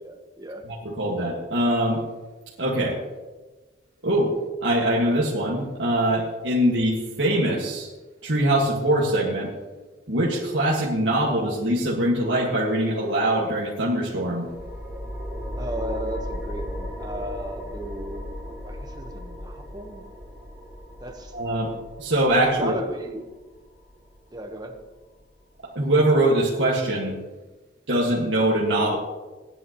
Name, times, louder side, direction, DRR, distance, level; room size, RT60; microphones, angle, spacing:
voice 1, 0.0-0.6 15.5-20.0 21.0-21.3 22.6-23.2 24.3-24.8, right 1 dB, 20° right, 3 dB, 1.2 m, -35 dB
voice 2, 0.7-2.0 2.6-2.9 4.0-4.3 4.6-7.9 8.2-9.5 10.1-14.5 21.3-21.7 22.0-22.7 25.8-27.2 27.9-29.0, right 1 dB, 85° right, -5 dB, 1.9 m, -22 dB
sound 1, 14.5-25.5, equal, 5° right, 2.2 m, -36 dB
17.0 x 11.0 x 3.1 m, 1.2 s
head